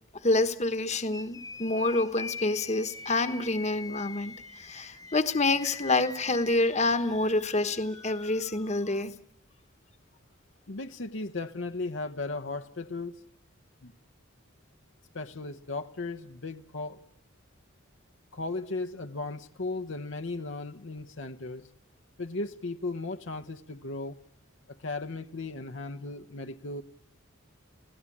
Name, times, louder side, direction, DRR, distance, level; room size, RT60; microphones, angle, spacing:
voice 1, 0.2-9.1, left 2 dB, 35° left, 10 dB, 1.3 m, -27 dB
sound 1, 1.1-9.0, left 4 dB, 15° left, 0.9 m, -44 dB
voice 2, 10.7-13.1 13.8-13.9 15.1-17.0 18.3-21.7 22.2-24.2 24.8-26.8, left 3 dB, 65° left, 7 dB, 0.9 m, -36 dB
29.5 x 17.5 x 8.6 m, 0.73 s
head